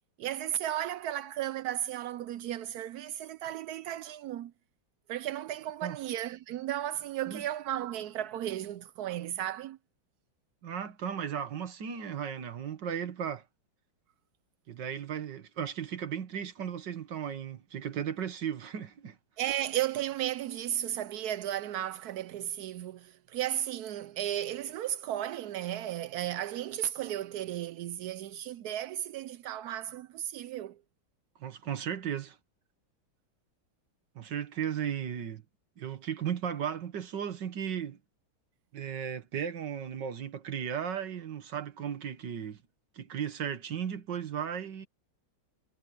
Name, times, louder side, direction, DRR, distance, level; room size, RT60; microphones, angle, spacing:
voice 1, 0.2-4.5 5.1-9.8 19.4-30.8, right 12 dB, 85° right, 0.8 m, -34 dB
voice 2, 10.6-13.4 14.7-19.2 31.4-32.4 34.2-35.4 35.8-38.0 38.7-42.6 43.0-44.9, right 8 dB, 60° right, 2.0 m, -35 dB
omnidirectional pair, 2.2 m